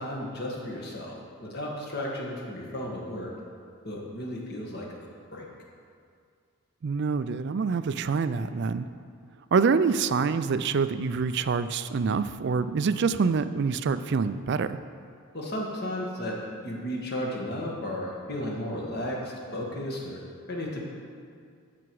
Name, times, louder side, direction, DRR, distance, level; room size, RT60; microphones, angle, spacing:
voice 1, 0.0-3.3 3.8-4.9 5.3-5.4 15.3-20.2 20.5-20.8, left 1 dB, 45° left, -2 dB, 1.7 m, -34 dB
voice 2, 6.8-8.9 9.5-14.8, right 5 dB, 50° right, 12 dB, 0.3 m, -26 dB
14.0 x 6.0 x 4.7 m, 2.2 s
head